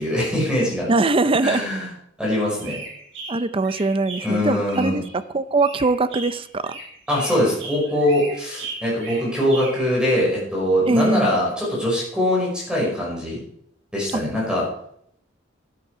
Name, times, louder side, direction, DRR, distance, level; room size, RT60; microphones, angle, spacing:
voice 1, 0.0-0.9 1.4-1.9 2.2-2.8 4.2-5.0 7.1-13.4 13.9-14.6, left 1 dB, 5° right, -4 dB, 5.5 m, -22 dB
voice 2, 0.9-1.6 3.3-5.0 5.3-6.8 10.9-11.4, right 3 dB, 30° right, 14 dB, 0.6 m, -21 dB
sound 1, 2.5-5.2 5.6-10.0, right 3 dB, 70° right, 4.8 m, -37 dB
12.0 x 10.5 x 4.8 m, 0.69 s
head